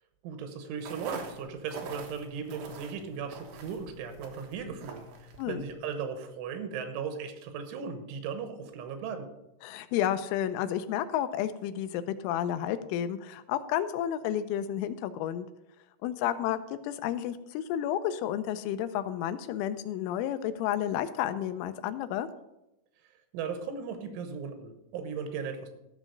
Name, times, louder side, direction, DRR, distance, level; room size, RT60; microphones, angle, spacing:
voice 1, 0.2-9.3 23.3-25.7, right 6 dB, 85° right, 7 dB, 3.6 m, -37 dB
sound 1, 0.8-5.8, right 3 dB, 65° right, 2.6 m, -45 dB
voice 2, 9.6-15.5 16.0-22.3, left 10 dB, 85° left, 11 dB, 3.1 m, -31 dB
13.5 x 6.1 x 5.2 m, 0.91 s
omnidirectional pair, 5.5 m